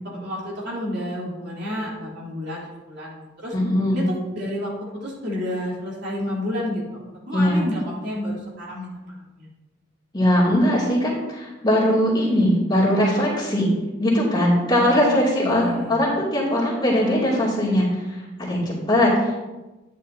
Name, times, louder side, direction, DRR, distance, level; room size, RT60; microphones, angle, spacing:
voice 1, 0.1-3.5 3.9-9.1 9.4-9.5 14.7-16.0, left 1 dB, 60° right, -5 dB, 3.5 m, -31 dB
voice 2, 3.5-4.0 7.3-7.6 10.1-13.7 14.0-19.4, left 1 dB, 25° left, -6 dB, 2.6 m, -20 dB
10.0 x 9.8 x 2.8 m, 1.1 s
head